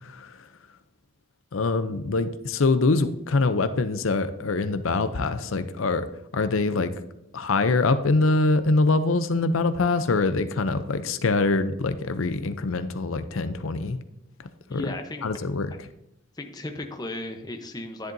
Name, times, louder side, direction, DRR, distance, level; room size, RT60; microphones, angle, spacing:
voice 1, 0.0-0.5 1.5-6.1 6.3-6.9 7.3-14.0 14.7-14.8 15.2-15.7, left 3 dB, 75° left, 10 dB, 0.6 m, -24 dB
voice 2, 14.7-15.3 16.3-18.1, left 2 dB, 20° left, 4 dB, 0.8 m, -35 dB
10.5 x 10.5 x 2.7 m, 0.81 s
head